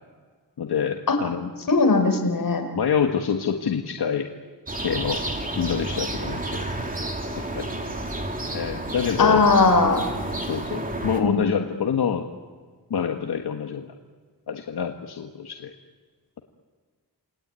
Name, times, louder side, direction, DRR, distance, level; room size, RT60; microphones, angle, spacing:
voice 1, 0.6-1.5 2.7-4.3 4.8-5.2 5.6-6.7 7.5-7.7 8.5-9.5 9.8-10.0 10.5-12.3 12.9-13.9 14.5-15.7, left 7 dB, 85° left, 3 dB, 1.6 m, -26 dB
voice 2, 1.7-2.6 9.2-10.0 11.2-11.4, left 3 dB, 60° left, 4 dB, 4.3 m, -18 dB
sound 1, 4.7-11.2, right 1 dB, 20° right, 3.1 m, -30 dB
28.5 x 19.5 x 9.0 m, 1.5 s
wide cardioid pair, 105°, 38 cm